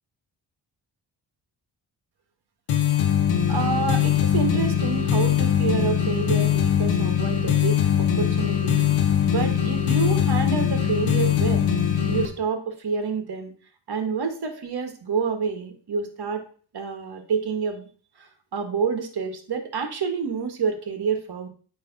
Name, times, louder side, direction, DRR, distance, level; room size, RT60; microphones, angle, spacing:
sound 1, 2.7-12.3, left 9 dB, 85° left, 1.1 m, -21 dB
voice 1, 3.5-8.9 9.3-11.7 12.1-13.5 13.9-16.4 16.7-17.9 18.2-21.5, right 5 dB, 60° right, 6 dB, 1.5 m, -28 dB
9.0 x 3.2 x 4.0 m, 0.42 s
cardioid pair, 60°, 44 cm